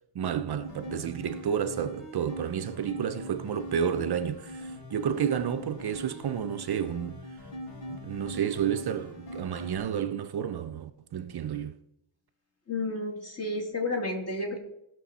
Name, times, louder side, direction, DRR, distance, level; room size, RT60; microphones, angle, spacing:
voice 1, 0.1-7.2 7.9-11.8, right 8 dB, 50° right, 0.7 m, -31 dB
sound 1, 0.6-9.8, left 1 dB, 85° left, 4.9 m, -42 dB
voice 2, 12.7-14.6, left 2 dB, 30° left, 2.5 m, -31 dB
17.0 x 6.2 x 4.2 m
cardioid pair, 115°, 49 cm